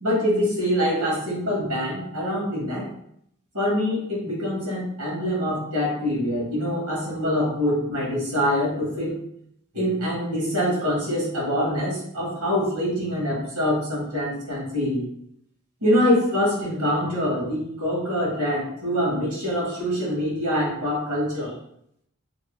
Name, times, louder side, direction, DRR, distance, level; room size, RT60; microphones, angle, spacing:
voice 1, 0.0-2.9 3.5-9.2 9.7-15.0 15.8-21.5, equal, 90° right, -4 dB, 1.2 m, -24 dB
2.7 x 2.6 x 3.0 m, 0.72 s
head